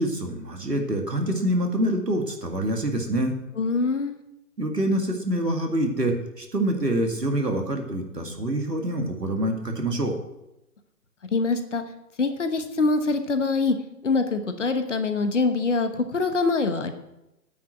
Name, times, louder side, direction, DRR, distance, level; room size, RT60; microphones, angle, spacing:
voice 1, 0.0-3.4 4.6-10.2, right 1 dB, 80° right, 3 dB, 2.3 m, -26 dB
voice 2, 3.6-4.2 11.3-11.8 12.2-13.7 14.0-16.9, left 3 dB, 50° left, 8 dB, 1.1 m, -24 dB
9.4 x 6.1 x 7.8 m, 0.90 s
figure-of-eight pair, 140°, 48 cm